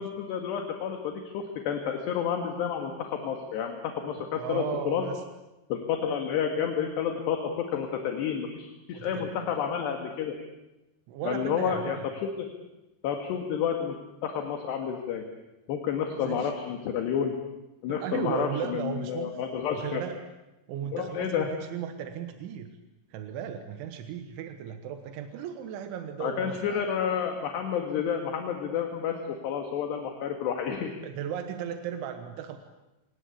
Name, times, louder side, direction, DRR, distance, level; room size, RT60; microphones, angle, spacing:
voice 1, 0.0-5.1 5.7-10.4 11.2-12.5 13.0-14.0 14.2-15.2 15.7-17.3 17.8-20.0 20.9-21.5 26.2-30.9, left 8 dB, 70° left, 4 dB, 3.9 m, -30 dB
voice 2, 4.4-5.2 8.9-9.6 11.1-12.1 16.2-16.5 17.9-19.4 19.7-20.2 20.7-22.7 23.1-26.9 31.0-32.6, right 8 dB, 90° right, 7 dB, 3.7 m, -36 dB
26.0 x 21.5 x 8.5 m, 0.99 s
omnidirectional pair, 5.3 m